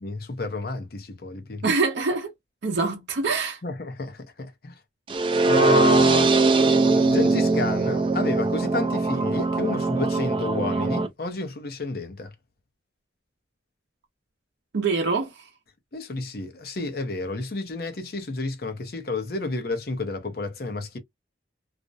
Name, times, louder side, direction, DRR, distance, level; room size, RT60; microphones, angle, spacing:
voice 1, 0.0-1.6 3.6-4.7 5.2-6.4 7.0-12.3 15.9-21.0, left 2 dB, 55° left, 0.6 m, -30 dB
voice 2, 1.6-2.3 2.6-3.6 14.7-15.3, right 4 dB, 75° right, 0.6 m, -24 dB
sound 1, 5.1-11.1, right 3 dB, 25° right, 0.4 m, -21 dB
2.4 x 2.0 x 2.5 m
head